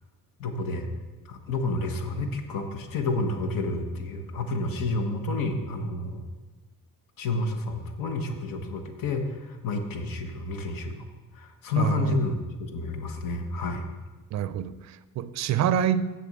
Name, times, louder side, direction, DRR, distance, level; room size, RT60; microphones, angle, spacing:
voice 1, 0.4-0.9 1.3-6.2 7.2-11.0 11.3-12.4 12.7-13.8, left 2 dB, 70° left, 1.3 m, -30 dB
voice 2, 11.8-12.2 14.3-16.1, right 9 dB, 50° right, 0.4 m, -26 dB
7.6 x 7.0 x 7.4 m
cardioid pair, 175°, 34 cm